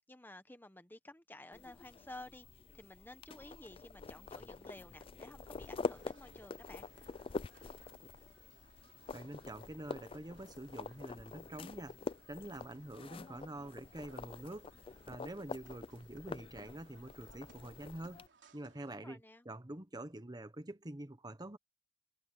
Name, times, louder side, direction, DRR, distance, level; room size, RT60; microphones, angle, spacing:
voice 1, 0.1-2.5 2.7-6.9 18.9-19.5, left 1 dB, 10° left, 1.1 m, -53 dB
sound 1, 1.5-18.3, left 4 dB, 30° left, 0.4 m, -46 dB
sound 2, 5.6-18.9, right 3 dB, 85° right, 3.2 m, -66 dB
voice 2, 9.1-12.0 12.3-14.7 15.1-18.2 18.5-21.6, right 1 dB, 25° right, 1.1 m, -46 dB
head